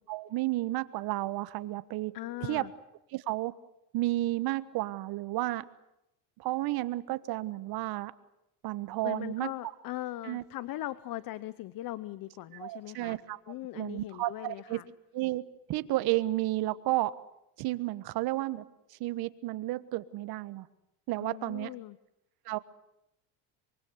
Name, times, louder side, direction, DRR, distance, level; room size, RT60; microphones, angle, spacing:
voice 1, 0.1-2.1 2.5-2.7 3.1-3.5 3.9-5.6 6.4-8.1 8.6-9.5 10.2-10.4 12.5-13.4 13.7-14.8 15.1-17.1 17.6-18.6 18.9-20.7 21.1-21.7 22.4-22.6, right 17 dB, 65° right, 14 dB, 1.4 m, -32 dB
voice 2, 2.1-2.7 9.0-13.2 13.5-14.8 21.2-22.0, left 15 dB, 55° left, 16 dB, 1.0 m, -40 dB
24.0 x 23.0 x 8.2 m, 0.85 s
supercardioid pair, 110°, 40 cm